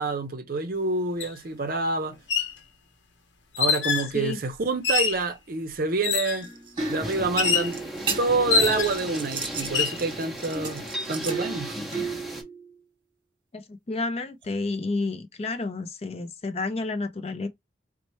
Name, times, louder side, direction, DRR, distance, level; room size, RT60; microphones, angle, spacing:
voice 1, 0.0-2.2 3.6-6.5 6.9-7.8 8.2-11.8, right 3 dB, 50° right, 0.6 m, -27 dB
sound 1, 1.2-1.3 2.1-2.5 3.5-4.1 4.8-5.2 6.0-6.5 7.4-7.7 8.5-9.1 9.6-10.0, left 6 dB, 75° left, 0.8 m, -25 dB
sound 2, 6.4-12.7 14.4-14.5, right 4 dB, 25° right, 1.2 m, -33 dB
sound 3, 6.8-12.4, equal, ahead, 0.8 m, -36 dB
voice 2, 13.5-17.5, left 3 dB, 35° left, 0.4 m, -30 dB
4.2 x 2.1 x 3.0 m
head